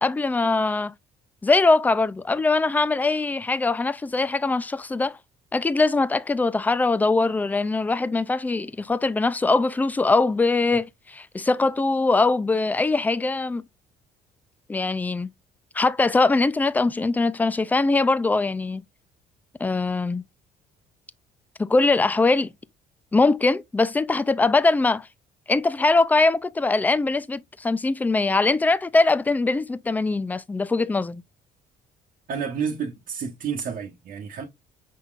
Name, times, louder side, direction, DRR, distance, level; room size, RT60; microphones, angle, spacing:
voice 1, 0.0-0.9 1.4-5.2 5.5-13.6 14.7-15.3 15.7-18.8 19.6-20.2 21.6-22.5 23.1-25.1 25.5-31.2, left 3 dB, 10° left, 0.3 m, -22 dB
voice 2, 32.3-34.4, right 6 dB, 55° right, 1.0 m, -30 dB
5.7 x 3.7 x 2.4 m
cardioid pair, 110°, 17 cm